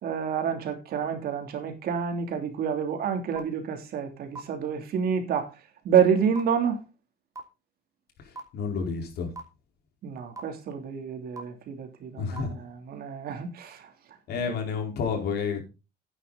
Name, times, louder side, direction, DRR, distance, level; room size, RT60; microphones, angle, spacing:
voice 1, 0.0-5.5 5.8-6.8 10.0-13.9, right 7 dB, 65° right, 3.1 m, -28 dB
sound 1, 3.4-3.5 4.3-4.4 5.3-5.4 6.4-6.5 7.4-7.5 8.4-8.5 9.4-9.5 10.4-10.5 11.4-11.5 12.4-12.5, right 3 dB, 20° right, 3.1 m, -37 dB
voice 2, 8.2-9.3 12.2-12.6 14.3-15.6, left 5 dB, 70° left, 4.4 m, -30 dB
11.0 x 9.8 x 4.1 m
cardioid pair, 110°, 17 cm